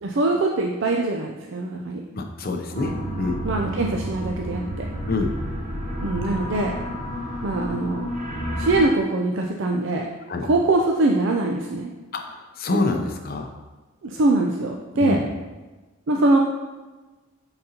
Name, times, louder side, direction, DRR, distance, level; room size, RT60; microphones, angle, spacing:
voice 1, 0.0-2.0 3.4-4.9 6.0-6.7 7.4-8.1 8.6-10.1 10.4-11.9 14.0-15.2 16.1-16.4, right 2 dB, 65° right, 1 dB, 0.5 m, -22 dB
voice 2, 2.1-3.4 5.1-5.3 10.3-10.5 12.1-13.5 15.0-15.3, left 2 dB, 45° left, 4 dB, 0.6 m, -26 dB
sound 1, 2.7-8.9, equal, 40° right, 0.9 m, -30 dB
8.6 x 4.0 x 2.8 m, 1.2 s
head